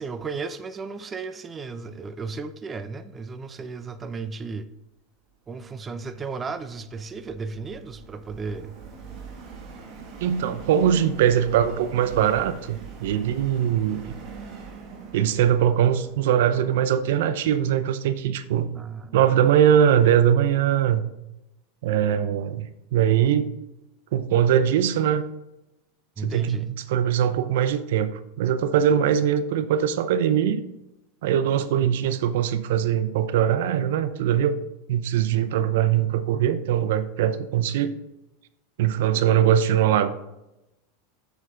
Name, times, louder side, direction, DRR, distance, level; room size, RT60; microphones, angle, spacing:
voice 1, 0.0-4.7 5.5-8.8 18.7-19.3 26.2-26.7 35.3-35.6, right 4 dB, 25° right, 12 dB, 0.6 m, -34 dB
Subway metro underground, 5.9-17.2, right 5 dB, 45° right, 2.3 m, -43 dB
voice 2, 10.2-14.2 15.1-18.7 19.1-21.0 21.8-23.5 24.1-25.2 26.2-26.6 26.9-30.6 31.2-34.6 34.9-38.0 38.8-40.1, right 9 dB, 70° right, 13 dB, 0.6 m, -21 dB
7.1 x 6.5 x 3.8 m, 0.93 s
hypercardioid pair, 100°, 0 cm